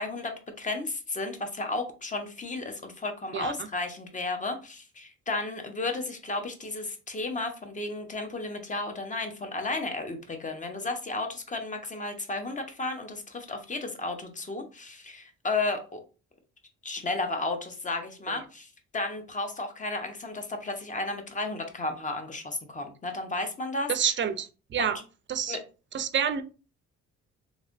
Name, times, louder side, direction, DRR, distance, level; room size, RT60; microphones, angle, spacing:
voice 1, 0.0-16.0 16.8-23.9 24.8-24.9 25.5-25.6, left 2 dB, 25° left, 0.8 m, -33 dB
voice 2, 23.9-25.0 25.3-25.6 25.9-26.4, right 8 dB, 40° right, 0.5 m, -28 dB
3.2 x 2.6 x 2.5 m
cardioid pair, 90°, 30 cm